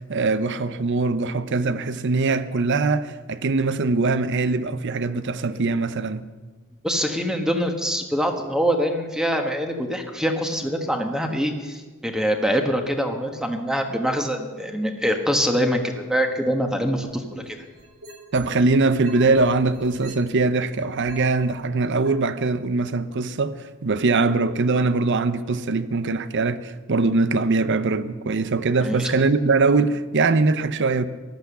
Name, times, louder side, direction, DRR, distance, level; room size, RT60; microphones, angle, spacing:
voice 1, 0.0-6.2 18.3-31.1, right 3 dB, 55° right, 0.7 m, -22 dB
voice 2, 6.8-17.6 28.8-29.1, equal, 5° right, 1.3 m, -24 dB
sound 1, 17.1-18.6 19.0-21.4 22.0-22.1, right 2 dB, 75° right, 4.2 m, -44 dB
14.5 x 11.5 x 6.8 m
head